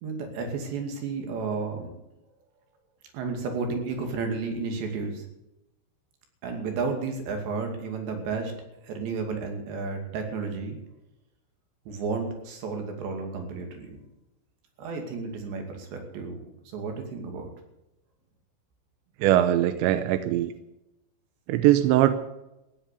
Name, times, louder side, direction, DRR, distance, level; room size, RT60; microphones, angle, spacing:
voice 1, 0.0-1.9 3.1-5.3 6.4-8.5 8.8-10.8 11.9-14.0 14.8-17.5, right 4 dB, 65° right, 4 dB, 4.6 m, -32 dB
voice 2, 19.2-20.5 21.5-22.2, right 13 dB, 80° right, 10 dB, 2.7 m, -21 dB
16.0 x 10.0 x 8.4 m, 0.92 s
omnidirectional pair, 5.7 m